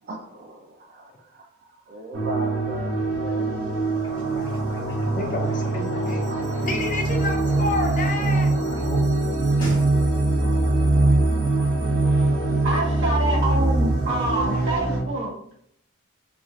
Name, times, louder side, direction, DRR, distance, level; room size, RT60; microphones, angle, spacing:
voice 1, 0.0-4.1 6.3-6.6 10.4-10.6, right 1 dB, 40° right, 0 dB, 0.4 m, -39 dB
sound 1, 2.1-15.0, right 2 dB, 75° right, 0.8 m, -23 dB
sound 2, 3.9-9.0 9.3-9.9, equal, 20° left, 1.5 m, -35 dB
voice 2, 5.1-6.2 6.6-8.5, left 3 dB, 40° left, 3 dB, 0.4 m, -29 dB
voice 3, 12.6-15.5, right 2 dB, 60° right, -5 dB, 1.4 m, -27 dB
3.2 x 2.4 x 2.4 m, 0.69 s
head